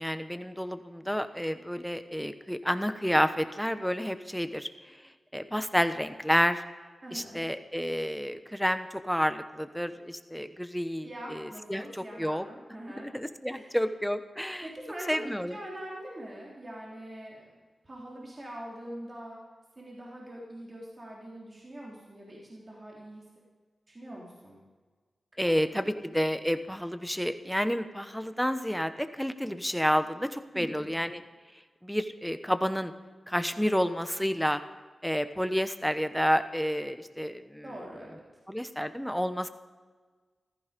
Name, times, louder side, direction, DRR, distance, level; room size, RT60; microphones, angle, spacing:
voice 1, 0.0-4.7 5.3-6.6 7.1-12.4 13.0-14.7 15.1-15.5 25.4-31.2 31.8-32.9 33.3-34.6 35.0-37.6 38.5-39.5, equal, ahead, 10 dB, 1.0 m, -30 dB
voice 2, 7.0-7.4 11.0-13.1 13.5-13.8 14.6-17.5 17.8-19.4 19.8-23.2 23.9-24.6 25.4-26.0 30.5-30.9 37.6-38.2, right 1 dB, 35° right, -4 dB, 3.6 m, -43 dB
14.5 x 14.5 x 5.2 m, 1.4 s
cardioid pair, 65°, 0 cm